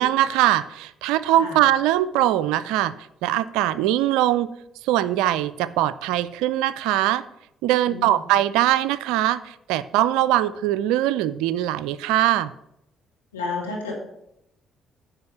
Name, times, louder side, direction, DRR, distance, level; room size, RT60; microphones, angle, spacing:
voice 1, 0.0-2.9 3.2-4.5 4.8-7.2 7.6-12.5, right 13 dB, 75° right, 16 dB, 0.3 m, -21 dB
voice 2, 7.9-8.2 13.3-13.9, left 4 dB, 90° left, -2 dB, 1.9 m, -31 dB
9.5 x 5.0 x 5.6 m, 0.80 s
hypercardioid pair, 45°, 0 cm